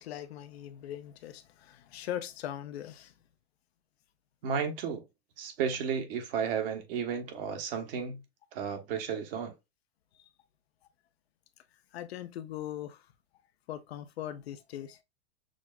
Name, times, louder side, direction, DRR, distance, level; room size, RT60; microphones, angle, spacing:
voice 1, 0.0-3.1 11.9-13.1 13.7-15.0, left 11 dB, 75° left, 0.6 m, -40 dB
voice 2, 4.4-5.0 5.4-8.2 8.5-9.5, right 7 dB, 60° right, 1.1 m, -33 dB
6.2 x 2.1 x 2.3 m
hypercardioid pair, 115°, 32 cm